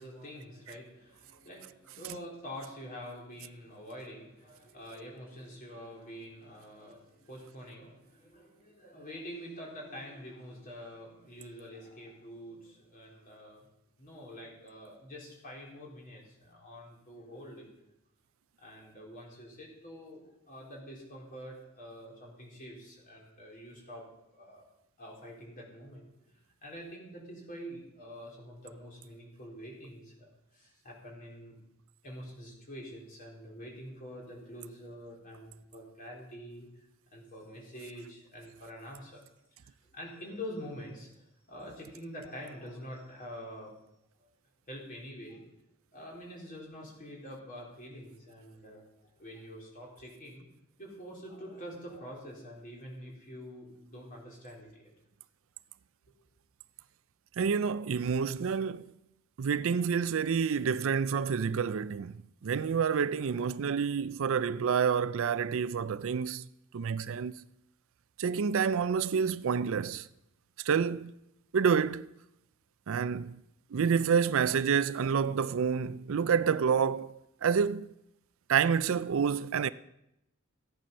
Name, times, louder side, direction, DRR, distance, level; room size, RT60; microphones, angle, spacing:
voice 1, 0.0-13.6 14.0-17.7 18.6-24.1 24.3-24.6 25.0-31.6 32.0-36.7 37.1-39.2 39.5-43.7 44.2-44.3 44.7-45.4 45.9-48.9 49.2-50.4 50.8-54.9, equal, 40° left, 4.1 m, -46 dB
voice 2, 57.4-58.9 59.4-66.4 66.7-67.3 68.2-70.1 70.6-71.1 71.5-72.1 72.9-73.4 73.7-77.9 78.5-79.7, right 6 dB, 65° right, 0.4 m, -28 dB
15.0 x 10.5 x 5.4 m
head